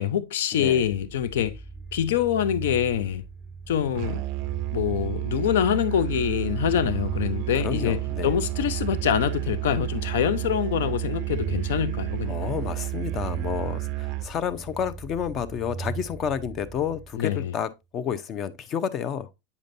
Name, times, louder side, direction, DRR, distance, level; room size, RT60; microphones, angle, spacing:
voice 1, 0.0-1.6 1.9-3.2 3.7-4.2 4.7-12.3 17.2-17.5, left 9 dB, 75° left, 0.5 m, -25 dB
voice 2, 0.5-0.8 7.5-8.3 12.3-19.3, left 8 dB, 35° left, 0.7 m, -30 dB
sound 1, 0.8-17.6, right 4 dB, 5° left, 1.4 m, -39 dB
Musical instrument, 4.0-14.3, right 23 dB, 55° right, 0.3 m, -31 dB
8.2 x 5.1 x 2.6 m
hypercardioid pair, 120°, 0 cm